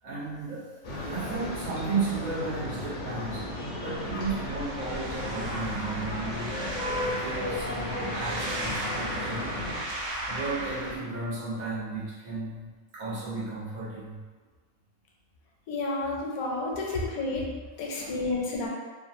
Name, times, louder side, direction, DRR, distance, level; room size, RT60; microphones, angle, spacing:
voice 1, 0.0-3.5 3.8-9.7 10.3-14.2 16.8-16.9 17.9-18.1, right 3 dB, 80° right, -7 dB, 1.3 m, -34 dB
sound 1, 0.8-9.8, left 1 dB, 50° left, 0.6 m, -35 dB
sound 2, 3.9-11.0, right 1 dB, 65° right, 0.8 m, -36 dB
voice 2, 15.7-17.4 17.8-18.7, left 2 dB, 80° left, -2 dB, 1.0 m, -30 dB
2.9 x 2.2 x 2.5 m, 1.4 s
omnidirectional pair, 1.5 m